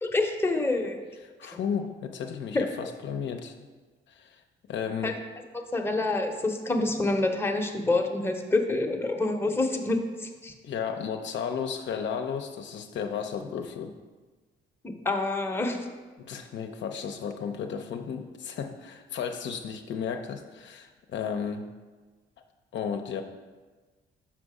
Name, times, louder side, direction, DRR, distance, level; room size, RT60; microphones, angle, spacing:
voice 1, 0.0-1.0 1.4-1.5 2.5-2.6 5.0-5.1 5.5-10.5 14.8-15.8, left 2 dB, 10° left, 3 dB, 0.8 m, -27 dB
voice 2, 1.4-3.6 4.1-4.4 4.7-5.2 10.6-13.9 16.2-21.7 22.7-23.2, left 7 dB, 65° left, 5 dB, 0.6 m, -33 dB
5.9 x 5.1 x 4.8 m, 1.3 s
cardioid pair, 90°, 20 cm